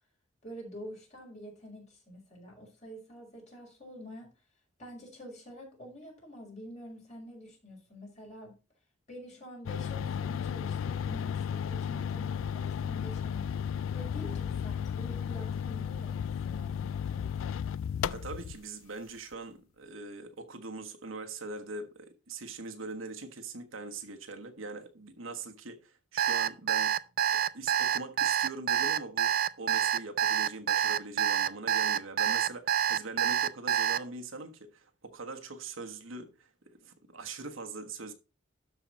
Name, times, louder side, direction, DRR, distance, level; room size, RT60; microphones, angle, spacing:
voice 1, 0.4-4.3 4.8-8.6 9.1-13.5 13.9-17.6, equal, 35° left, 5.4 m, -47 dB
sound 1, 9.7-18.6, left 8 dB, 85° left, 0.3 m, -34 dB
voice 2, 18.0-26.9 27.3-36.5 36.8-38.1, right 3 dB, 90° right, 1.4 m, -42 dB
Alarm, 26.2-34.0, right 9 dB, 50° right, 0.4 m, -27 dB
12.5 x 4.8 x 4.1 m
head